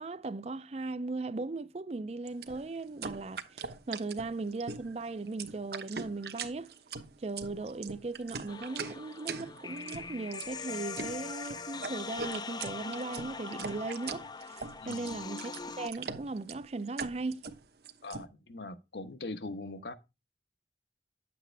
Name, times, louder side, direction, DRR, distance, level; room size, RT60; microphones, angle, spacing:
voice 1, 0.0-6.7 7.2-17.4, right 3 dB, 35° right, 0.4 m, -38 dB
sound 1, 2.3-18.2, right 5 dB, 65° right, 1.0 m, -41 dB
sound 2, 8.5-15.9, left 5 dB, 25° left, 0.4 m, -42 dB
voice 2, 18.0-19.9, left 2 dB, 75° left, 1.1 m, -41 dB
10.0 x 7.8 x 3.3 m
head